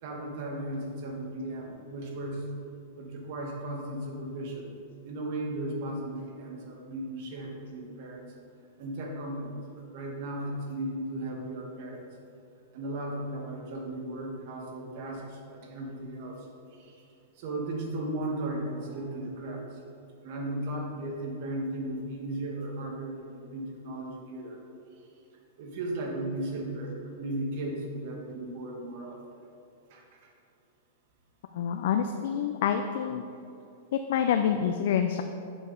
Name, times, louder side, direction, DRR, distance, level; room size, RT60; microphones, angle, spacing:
voice 1, 0.0-2.5 3.0-4.7 5.1-8.2 8.8-12.0 12.7-17.0 17.3-19.8 20.2-24.6 25.6-29.5 29.9-30.3, right 1 dB, 45° right, 0 dB, 1.4 m, -36 dB
voice 2, 31.5-33.2 33.9-35.2, left 8 dB, 60° left, 7 dB, 0.4 m, -27 dB
7.0 x 4.9 x 5.3 m, 2.6 s
supercardioid pair, 160°, 0 cm